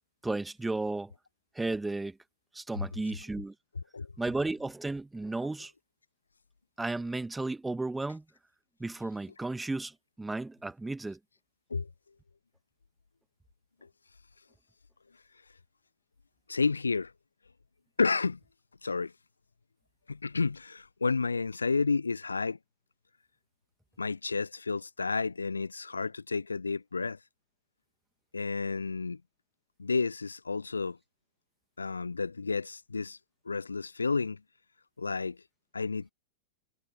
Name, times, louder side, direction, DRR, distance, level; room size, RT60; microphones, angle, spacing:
voice 1, 0.2-1.1 1.6-2.2 2.5-3.5 4.2-5.7 6.8-8.2 8.8-11.2, right 2 dB, 10° right, 2.0 m, -34 dB
voice 2, 16.5-17.1 18.0-18.4 18.8-19.1 20.1-22.6 24.0-27.2 28.3-29.2 29.8-31.0 31.8-33.2 33.5-34.4 35.0-35.4 35.7-36.1, left 4 dB, 75° left, 0.8 m, -31 dB
figure-of-eight pair, 90°, 0 cm